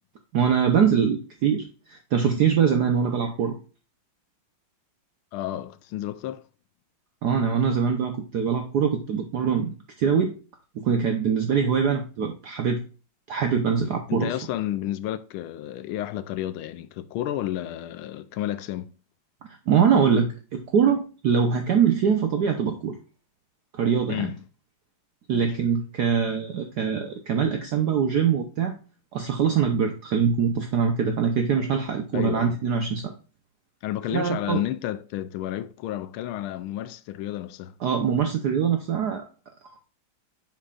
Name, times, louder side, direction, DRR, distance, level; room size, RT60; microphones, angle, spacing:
voice 1, 0.3-3.6 7.2-10.3 10.7-12.8 13.3-14.3 19.7-23.0 23.7-24.3 25.3-28.7 29.1-33.1 34.1-34.6 37.8-39.2, right 7 dB, 60° right, 1.2 m, -23 dB
voice 2, 5.3-6.5 14.1-18.9 24.1-24.4 25.3-25.6 32.1-32.5 33.8-37.7, left 13 dB, 85° left, 1.4 m, -31 dB
7.6 x 6.3 x 2.4 m
omnidirectional pair, 2.3 m